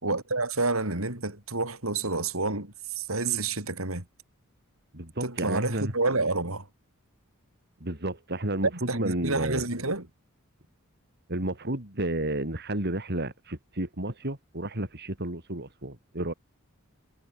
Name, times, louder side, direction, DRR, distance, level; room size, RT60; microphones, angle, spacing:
voice 1, 0.0-4.0 5.2-6.7 8.9-10.1, right 3 dB, 75° right, 5.7 m, -29 dB
voice 2, 4.9-5.9 7.8-9.6 11.3-16.3, right 1 dB, 50° right, 4.2 m, -31 dB
head